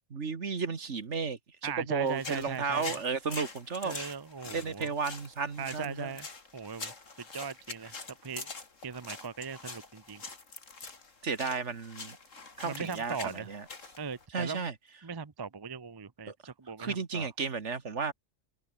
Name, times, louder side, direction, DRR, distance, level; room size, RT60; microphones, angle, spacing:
voice 1, 0.1-4.0 4.5-6.1 11.2-12.2 12.6-13.7 14.3-14.7 16.3-16.4 16.8-18.1, right 5 dB, 65° right, 2.1 m, -33 dB
voice 2, 1.6-3.0 3.8-4.9 5.6-6.3 6.5-6.9 7.3-7.9 8.2-8.5 8.8-10.2 12.6-13.5 14.0-14.7 15.0-17.3, right 5 dB, 25° right, 0.6 m, -39 dB
sound 1, 2.1-14.3, left 4 dB, 85° left, 3.2 m, -45 dB
omnidirectional pair, 1.3 m